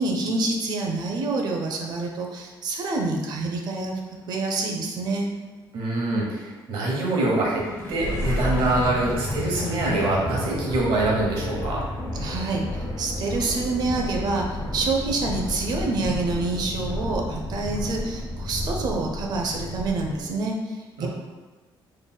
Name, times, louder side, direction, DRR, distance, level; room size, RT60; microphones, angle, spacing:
voice 1, 0.0-3.9 4.3-5.3 12.1-12.6 13.0-21.1, right 3 dB, 50° right, 1 dB, 0.5 m, -27 dB
voice 2, 5.7-11.8 21.0-21.1, right 2 dB, 80° right, -3 dB, 1.0 m, -24 dB
sound 1, 7.2-20.4, left 1 dB, 35° left, 0.9 m, -31 dB
3.8 x 3.2 x 2.2 m, 1.3 s
cardioid pair, 170°, 9 cm